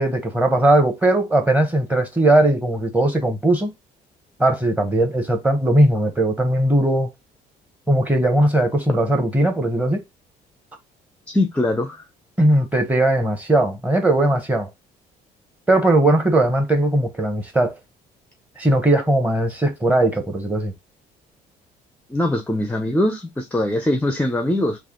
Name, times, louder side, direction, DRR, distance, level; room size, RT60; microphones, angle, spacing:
voice 1, 0.0-3.7 4.4-7.1 7.9-10.0 12.4-14.7 15.7-17.8 18.6-20.7, right 1 dB, 10° right, 0.9 m, -18 dB
voice 2, 11.3-12.0 22.1-24.8, left 1 dB, 10° left, 0.5 m, -22 dB
3.4 x 2.5 x 3.6 m
cardioid pair, 110°, 17 cm